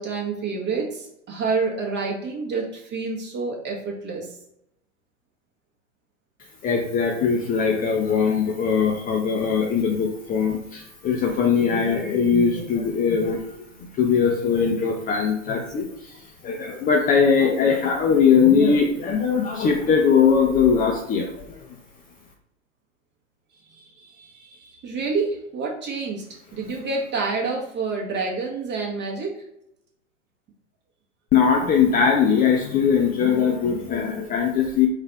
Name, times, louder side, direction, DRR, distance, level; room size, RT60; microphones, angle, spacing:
voice 1, 0.0-4.3 23.7-26.2 26.5-29.4, right 4 dB, 30° right, -2 dB, 1.5 m, -28 dB
voice 2, 6.6-21.8 31.3-34.9, left 6 dB, 25° left, 1 dB, 0.6 m, -21 dB
4.0 x 2.7 x 4.6 m, 0.80 s
hypercardioid pair, 105°, 37 cm